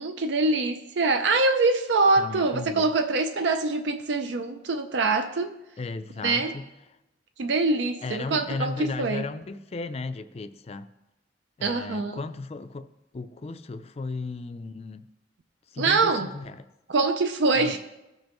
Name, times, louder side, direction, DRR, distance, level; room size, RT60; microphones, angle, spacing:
voice 1, 0.0-5.6 6.2-6.6 7.4-9.3 11.6-12.2 15.8-16.3 16.9-17.8, right 3 dB, 70° right, 0.5 m, -24 dB
voice 2, 2.2-2.9 5.8-6.6 8.0-10.9 11.6-15.1 15.7-16.6 17.5-17.8, left 3 dB, 35° left, 0.4 m, -35 dB
16.0 x 5.3 x 3.0 m
head